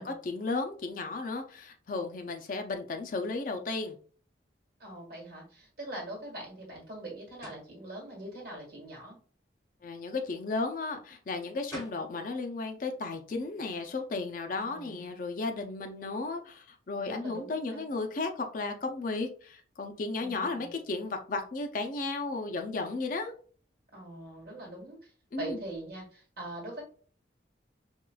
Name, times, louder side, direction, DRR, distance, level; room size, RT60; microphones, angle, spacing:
voice 1, 0.0-4.0 9.8-23.3 25.3-25.6, left 3 dB, 45° left, 5 dB, 0.4 m, -34 dB
voice 2, 4.8-9.2 14.6-15.1 17.0-17.9 20.2-20.7 23.9-25.1 25.4-26.8, right 1 dB, 50° right, -2 dB, 1.5 m, -42 dB
sound 1, 7.4-7.7 11.4-11.5 11.7-12.1, equal, 15° left, 1.3 m, -44 dB
4.5 x 2.3 x 2.3 m, 0.43 s
head